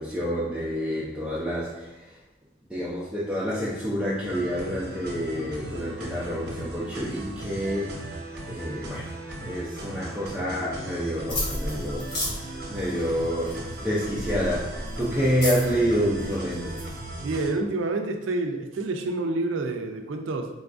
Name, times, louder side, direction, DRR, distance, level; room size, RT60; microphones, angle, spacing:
voice 1, 0.0-2.2 2.7-7.9 8.5-9.1 9.4-12.1 12.4-16.8, equal, 5° right, -8 dB, 0.4 m, -28 dB
sound 1, 4.2-17.5, right 2 dB, 60° right, 0.7 m, -37 dB
sound 2, 11.3-17.0, left 1 dB, 60° left, 1.3 m, -34 dB
voice 2, 17.2-20.5, right 2 dB, 75° right, 5 dB, 0.4 m, -28 dB
3.9 x 2.3 x 2.5 m, 1.0 s
head